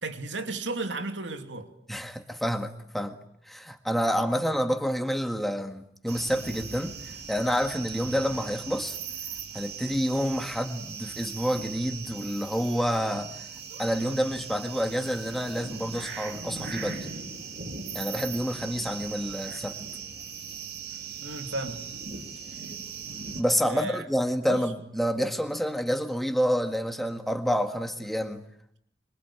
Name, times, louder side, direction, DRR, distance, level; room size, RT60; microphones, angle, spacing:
voice 1, 0.0-1.7 21.2-21.8 23.7-24.0 24.5-24.6, right 2 dB, 90° right, 2.8 m, -33 dB
voice 2, 1.9-3.2 3.5-6.9 7.3-9.0 9.5-13.3 13.8-17.1 17.9-19.8 23.4-28.4, equal, ahead, 1.7 m, -28 dB
sound 1, 6.1-23.4, right 5 dB, 60° right, 3.4 m, -39 dB
25.5 x 25.5 x 8.8 m
head